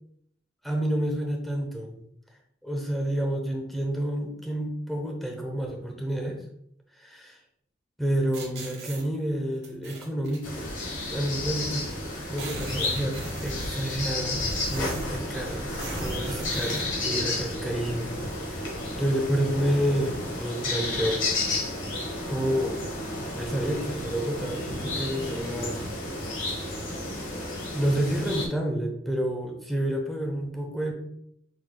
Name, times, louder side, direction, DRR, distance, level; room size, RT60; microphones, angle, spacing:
voice 1, 0.6-2.0 2.6-6.4 7.0-7.4 8.0-10.7 11.1-11.9 12.3-13.2 13.4-18.7 19.0-21.2 22.3-22.8 23.3-25.8 27.7-30.9, right 1 dB, ahead, 1 dB, 0.7 m, -29 dB
sound 1, 8.3-9.0 9.6-10.4 11.4-11.5 11.7-11.8 12.1-15.2 15.7-16.9, right 2 dB, 55° right, 1.3 m, -39 dB
sound 2, 10.4-28.5, left 2 dB, 90° left, 1.4 m, -32 dB
6.0 x 3.3 x 2.2 m, 0.71 s
head